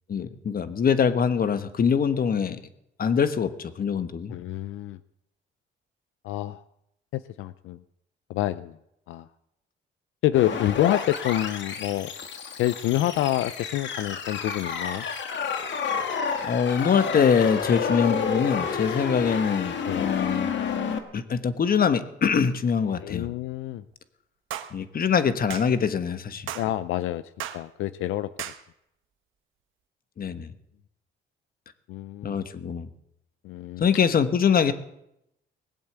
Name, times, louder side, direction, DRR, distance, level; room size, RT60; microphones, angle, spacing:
voice 1, 0.1-2.6 3.0-3.5 3.8-4.3 16.4-20.5 21.1-23.3 24.7-26.5 30.2-30.5 32.2-32.9 33.8-34.7, left 7 dB, 45° left, 11 dB, 1.2 m, -23 dB
voice 2, 4.3-5.0 6.2-6.6 7.1-7.8 8.3-8.7 9.1-9.3 10.2-12.1 12.6-15.0 19.8-20.1 23.0-23.8 26.5-27.2 27.5-28.3 31.9-32.4 33.4-33.9, left 14 dB, 85° left, 14 dB, 0.5 m, -27 dB
sound 1, 10.3-21.0, left 6 dB, 65° left, 1.7 m, -30 dB
sound 2, 24.5-24.7 25.5-25.7 26.5-26.7 27.4-27.6 28.4-28.6, right 11 dB, 85° right, 1.1 m, -35 dB
20.0 x 8.0 x 8.0 m, 0.83 s
cardioid pair, 90°, 20 cm